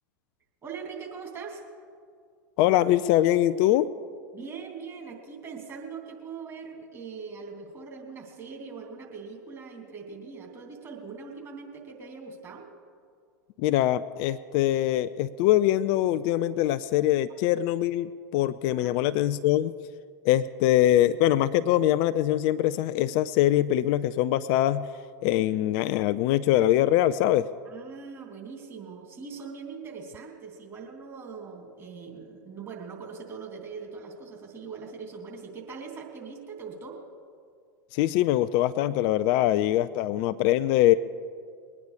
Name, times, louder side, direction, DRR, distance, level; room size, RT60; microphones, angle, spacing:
voice 1, 0.6-1.6 4.3-12.7 18.8-19.2 27.6-37.0, right 5 dB, 25° right, 0 dB, 3.2 m, -41 dB
voice 2, 2.6-3.9 13.6-19.7 20.2-24.9 25.2-27.5 37.9-40.9, left 13 dB, 45° left, 13 dB, 0.4 m, -23 dB
21.5 x 9.6 x 5.0 m, 2.2 s
figure-of-eight pair, 90°, 11 cm